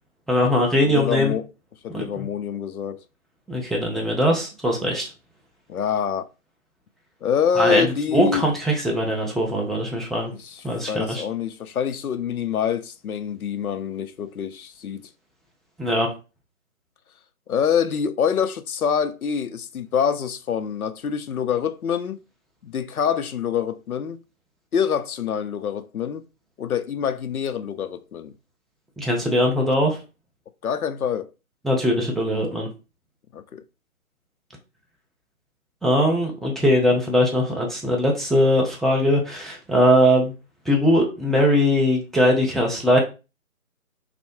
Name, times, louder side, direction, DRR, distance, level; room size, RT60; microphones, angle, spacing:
voice 1, 0.3-1.3 1.9-2.3 3.5-5.1 7.6-7.9 8.1-10.3 10.6-11.2 15.8-16.1 29.0-30.0 31.6-32.7 35.8-40.3 40.7-43.0, equal, ahead, 0.3 m, -20 dB
voice 2, 0.8-1.4 1.8-3.0 5.7-6.3 7.2-8.5 10.3-15.1 17.5-22.2 22.6-24.2 24.7-26.2 26.6-28.3 30.6-31.3 33.3-33.6, left 7 dB, 85° left, 0.5 m, -26 dB
3.2 x 2.0 x 2.9 m
figure-of-eight pair, 160°, 42 cm